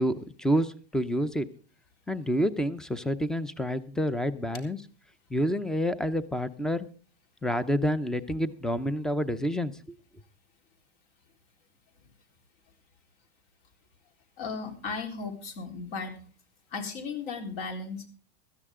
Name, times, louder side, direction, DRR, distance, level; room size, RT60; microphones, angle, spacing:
voice 1, 0.0-1.5 2.1-4.8 5.3-6.9 7.4-9.7, equal, ahead, 16 dB, 0.5 m, -28 dB
voice 2, 14.4-16.2 16.7-18.1, left 4 dB, 60° left, 5 dB, 4.0 m, -35 dB
16.5 x 13.5 x 3.7 m, 0.38 s
supercardioid pair, 145°, 33 cm